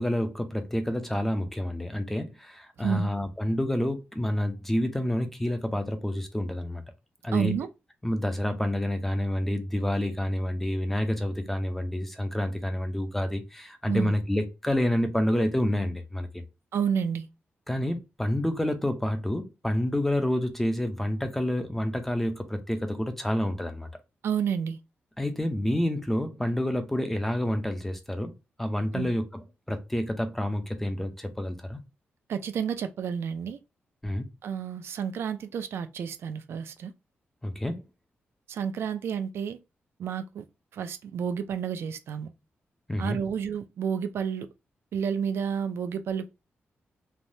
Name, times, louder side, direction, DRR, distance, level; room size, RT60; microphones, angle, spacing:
voice 1, 0.0-6.8 7.2-7.5 8.0-16.4 17.7-23.9 25.2-28.3 28.6-29.2 29.7-31.8 34.0-34.3 37.4-37.9 42.9-43.2, left 1 dB, 5° left, 0.4 m, -28 dB
voice 2, 2.8-3.1 7.3-7.7 13.9-14.1 16.7-17.3 24.2-24.8 28.9-29.1 32.3-33.6 34.4-36.9 38.5-39.6 40.0-40.4 40.7-42.3 43.0-44.5 44.9-46.3, right 7 dB, 70° right, 0.3 m, -30 dB
3.2 x 2.1 x 2.6 m
wide cardioid pair, 155°, 4 cm